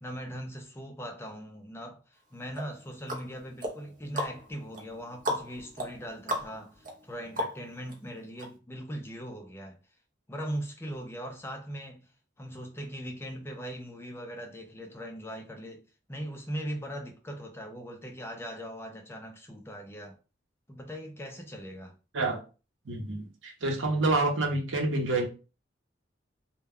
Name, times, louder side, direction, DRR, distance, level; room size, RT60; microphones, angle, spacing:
voice 1, 0.0-9.8 10.3-12.1 12.4-15.8 16.1-20.2 20.7-22.0, equal, 15° left, 0.4 m, -40 dB
sound 1, 2.6-7.9 8.4-8.5, equal, 40° right, 0.6 m, -36 dB
voice 2, 22.8-25.3, right 2 dB, 80° right, 0.8 m, -28 dB
2.2 x 2.1 x 3.5 m
head